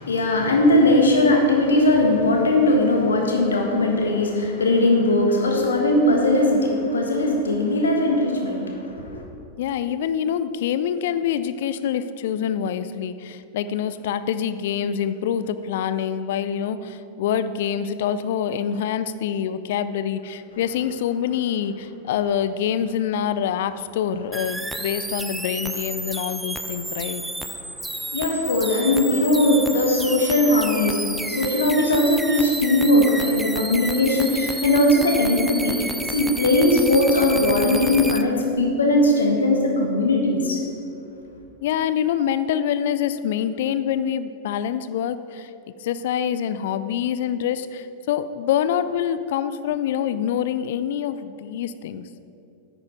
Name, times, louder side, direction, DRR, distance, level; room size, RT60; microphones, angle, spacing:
voice 1, 0.0-9.2 27.6-40.6, left 1 dB, 70° left, 1 dB, 1.5 m, -19 dB
voice 2, 9.6-27.2 41.6-45.5 45.8-52.1, left 9 dB, 55° left, 13 dB, 0.4 m, -25 dB
sound 1, 24.3-38.2, right 1 dB, 5° right, 0.5 m, -31 dB
9.7 x 9.0 x 4.5 m, 2.7 s
figure-of-eight pair, 90°, 0 cm